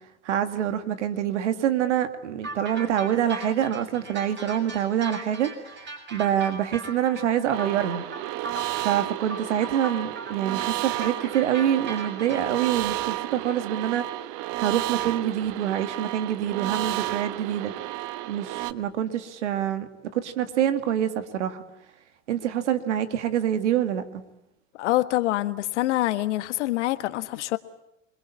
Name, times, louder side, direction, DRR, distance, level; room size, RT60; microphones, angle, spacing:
voice 1, 0.2-8.0 8.8-14.2 14.6-17.8 18.3-21.6 22.3-24.2, right 10 dB, 90° right, 2.1 m, -26 dB
sound 1, 2.4-12.7, right 3 dB, 30° right, 7.2 m, -39 dB
sound 2, 7.5-18.7, right 16 dB, 65° right, 1.2 m, -32 dB
voice 2, 24.8-27.6, left 16 dB, 85° left, 1.5 m, -25 dB
28.0 x 21.5 x 8.5 m
hypercardioid pair, 85°, 34 cm